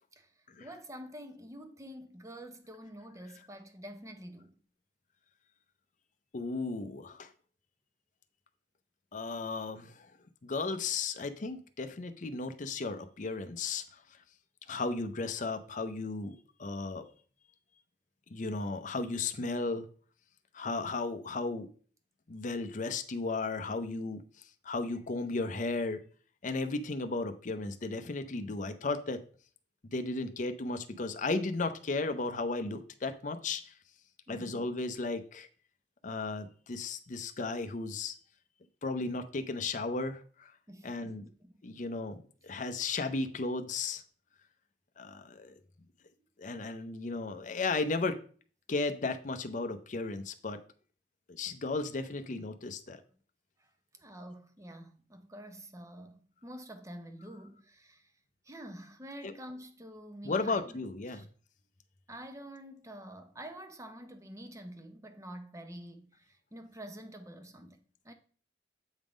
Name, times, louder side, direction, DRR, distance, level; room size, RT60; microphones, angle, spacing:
voice 1, 0.0-4.6 34.3-34.7 40.7-41.6 53.6-58.1 58.4-60.8 61.1-61.3 62.1-68.1, equal, 20° right, 0.8 m, -48 dB
voice 2, 6.3-7.3 9.1-10.1 10.4-14.2 14.7-17.1 18.3-19.9 20.5-21.7 22.3-24.2 24.6-26.0 26.4-29.2 29.8-33.7 34.3-35.5 36.0-38.2 38.8-40.5 40.8-41.2 41.6-44.0 45.0-45.6 46.4-48.2 48.7-50.6 51.3-53.0 59.2-59.3 60.2-61.2, left 3 dB, 45° left, 0.6 m, -35 dB
8.1 x 3.6 x 5.0 m
head